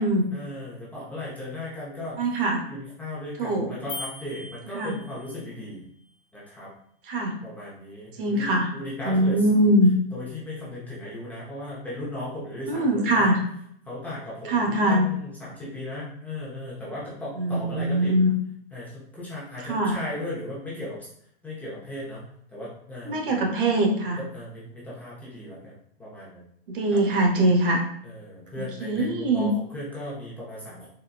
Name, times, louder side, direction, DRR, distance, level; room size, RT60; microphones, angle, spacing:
voice 1, 0.3-2.4 2.7-5.9 6.3-6.7 7.1-9.7 10.1-13.3 13.9-18.2 18.7-21.1 21.4-22.2 22.5-23.2 24.2-26.4 26.9-27.0 28.0-30.9, left 1 dB, 5° left, -8 dB, 0.5 m, -37 dB
voice 2, 2.2-2.7 3.4-3.7 4.7-4.9 7.0-7.4 8.2-8.7 9.0-9.9 12.7-13.4 14.5-15.1 17.4-18.3 19.6-20.0 23.1-24.2 26.7-27.8 28.6-29.5, right 1 dB, 60° right, 2 dB, 0.8 m, -22 dB
sound 1, 3.9-5.4, left 3 dB, 70° left, 1.0 m, -39 dB
4.1 x 2.2 x 2.3 m, 0.69 s
hypercardioid pair, 140°, 30 cm